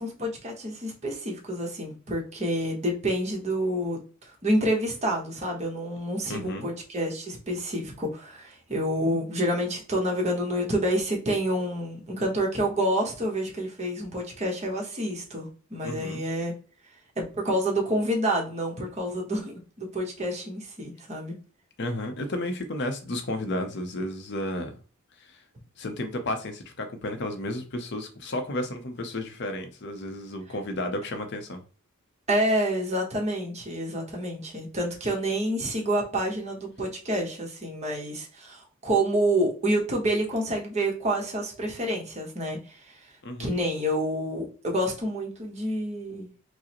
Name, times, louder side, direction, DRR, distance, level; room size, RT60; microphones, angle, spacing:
voice 1, 0.0-4.0 4.4-16.5 17.2-21.3 32.3-43.1 43.4-46.3, right 1 dB, 30° right, 0 dB, 1.0 m, -28 dB
voice 2, 6.3-6.7 15.8-16.2 21.8-24.8 25.2-25.4 25.8-31.6 43.2-43.5, left 1 dB, 55° left, 6 dB, 0.6 m, -32 dB
4.7 x 2.0 x 2.9 m, 0.38 s
head